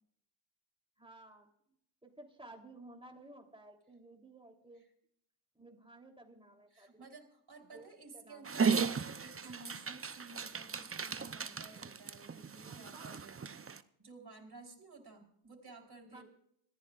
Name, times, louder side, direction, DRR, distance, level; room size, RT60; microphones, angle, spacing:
voice 1, 1.0-1.8 2.0-4.8 5.5-7.1 7.6-8.5 12.7-13.1 16.1-16.2, right 2 dB, 10° right, 2 dB, 3.5 m, -55 dB
voice 2, 6.7-13.4 14.0-16.2, right 3 dB, 50° right, 2 dB, 4.2 m, -54 dB
Dog, 8.4-13.8, right 5 dB, 30° right, 0.7 m, -36 dB
27.0 x 14.5 x 2.5 m, 0.71 s
cardioid pair, 75°, 49 cm